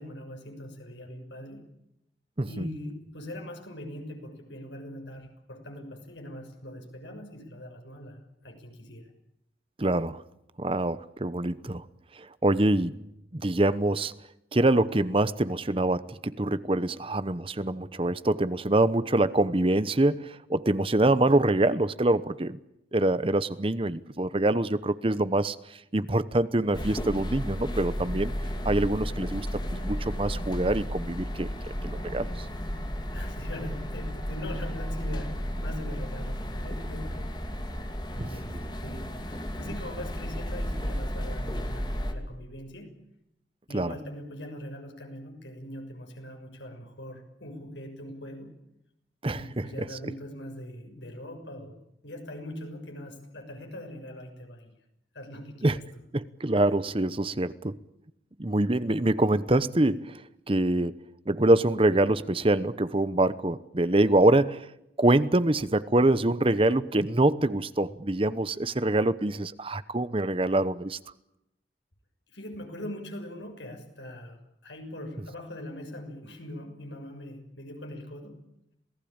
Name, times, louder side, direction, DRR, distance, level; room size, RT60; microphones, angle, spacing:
voice 1, 0.0-1.7 2.5-9.1 33.1-37.3 38.1-38.5 38.8-42.9 43.7-48.5 49.3-51.8 52.0-54.7 55.1-55.8 72.3-78.4, left 1 dB, 85° left, 4 dB, 6.5 m, -41 dB
voice 2, 9.8-10.2 10.6-11.8 12.1-13.0 13.3-14.1 14.5-22.6 22.9-25.6 25.9-28.3 28.6-31.5 31.8-32.5 38.2-38.6 43.7-43.9 49.2-49.7 55.6-55.8 56.1-57.8 58.4-60.2 60.5-61.0 61.3-64.6 65.0-71.0, right 1 dB, 30° right, 15 dB, 0.9 m, -25 dB
sound 1, 26.7-42.1, equal, 25° left, 2.5 m, -33 dB
27.0 x 18.5 x 8.8 m, 0.83 s
head